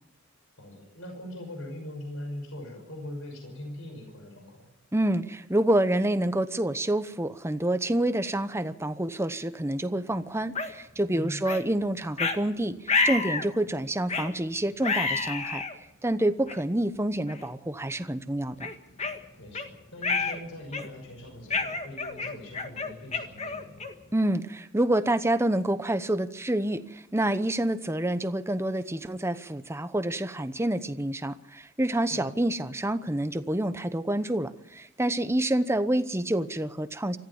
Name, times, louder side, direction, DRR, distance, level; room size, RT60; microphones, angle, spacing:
voice 1, 0.6-4.7 11.1-11.4 19.4-23.9 32.1-32.3, left 1 dB, 65° left, 3 dB, 6.1 m, -41 dB
voice 2, 4.9-15.6 16.0-18.7 24.1-37.2, right 1 dB, 10° right, 12 dB, 0.9 m, -28 dB
sound 1, 10.6-10.7 11.5-11.6 12.2-12.4 12.9-13.5 14.1-14.3 14.8-15.7 16.5-16.6 17.3-17.5 17.9-18.1 18.6-19.7 20.0-20.4 20.7-21.1 21.5-24.1, left 4 dB, 30° left, 1.8 m, -29 dB
24.5 x 14.5 x 7.2 m, 0.89 s
head